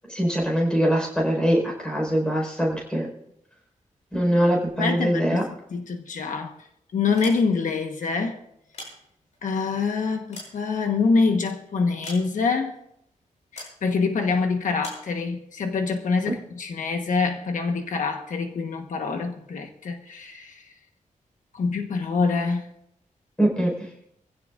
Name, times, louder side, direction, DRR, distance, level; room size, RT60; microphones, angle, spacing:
voice 1, 0.1-3.1 4.1-5.4 23.4-23.7, equal, 5° left, -1 dB, 4.8 m, -22 dB
voice 2, 4.8-6.5 6.9-8.4 9.4-12.7 13.5-20.6 21.5-22.7, left 4 dB, 75° left, 4 dB, 1.3 m, -25 dB
sound 1, 7.1-7.8 8.5-9.5 10.0-11.2 12.0-12.7 13.6-13.8 14.8-15.1, left 1 dB, 55° left, 7.4 m, -42 dB
23.5 x 16.0 x 2.6 m, 0.74 s
wide cardioid pair, 180°, 14 cm